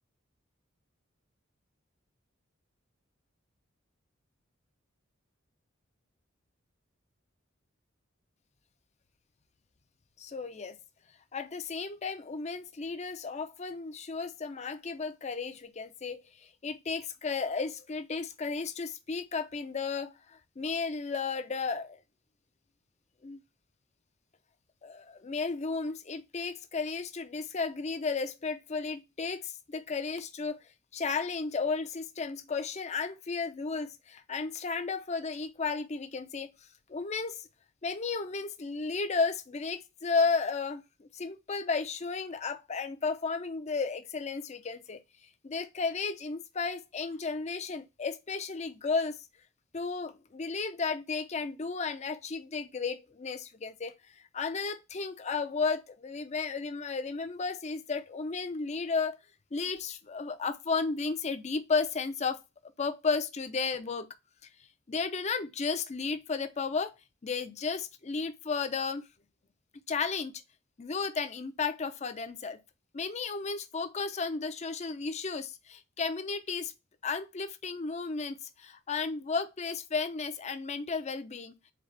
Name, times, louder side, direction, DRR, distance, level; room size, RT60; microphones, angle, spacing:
voice 1, 10.2-10.8 11.3-22.0 23.2-23.4 24.8-30.6 30.9-36.5 36.9-37.5 37.8-45.0 45.4-49.2 49.7-53.9 54.3-59.2 59.5-62.4 62.8-64.1 64.9-66.9 67.2-69.0 69.9-70.3 70.8-72.6 72.9-76.7 77.0-81.5, left 4 dB, 35° left, 0.5 m, -33 dB
4.0 x 3.9 x 3.2 m
head